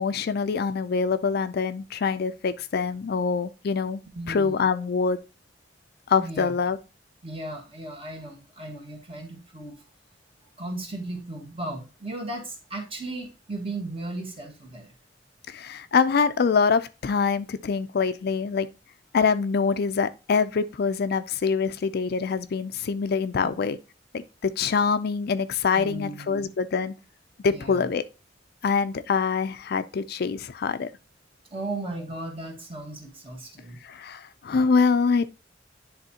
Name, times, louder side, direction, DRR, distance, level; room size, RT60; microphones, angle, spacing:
voice 1, 0.0-4.0 4.3-5.2 6.1-6.8 15.5-18.7 19.1-23.8 24.1-26.9 27.4-28.0 28.6-30.9 33.8-35.3, left 5 dB, 60° left, 0.4 m, -25 dB
voice 2, 4.1-4.7 6.2-6.5 7.2-9.8 10.6-14.9 23.4-23.5 25.7-26.5 27.5-27.9 31.5-33.8, right 2 dB, 30° right, 1.5 m, -36 dB
10.5 x 3.5 x 2.8 m
head